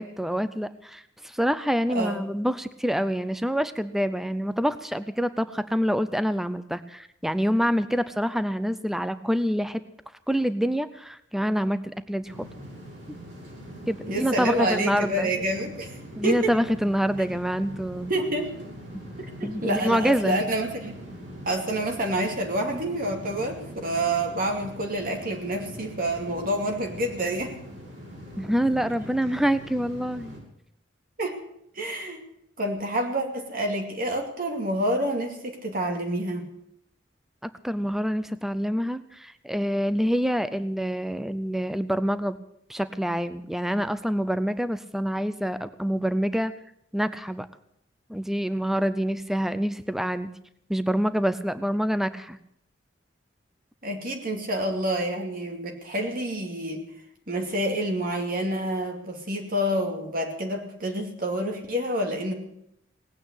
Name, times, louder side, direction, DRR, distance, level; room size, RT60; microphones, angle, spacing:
voice 1, 0.0-9.8 10.3-12.4 13.9-15.3 16.2-18.1 19.4-20.4 28.4-30.4 37.4-42.4 42.7-46.5 46.9-47.5 48.1-50.3 50.7-52.4, equal, ahead, 13 dB, 0.5 m, -26 dB
voice 2, 1.9-2.2 14.1-16.0 16.2-16.5 18.1-18.5 19.2-20.9 21.5-27.5 31.2-31.4 31.7-32.2 32.6-36.5 53.8-56.9 57.3-62.3, right 1 dB, 50° right, 2 dB, 2.4 m, -28 dB
sound 1, 12.2-30.4, equal, 70° right, 6.9 m, -42 dB
18.5 x 9.1 x 8.3 m, 0.76 s
head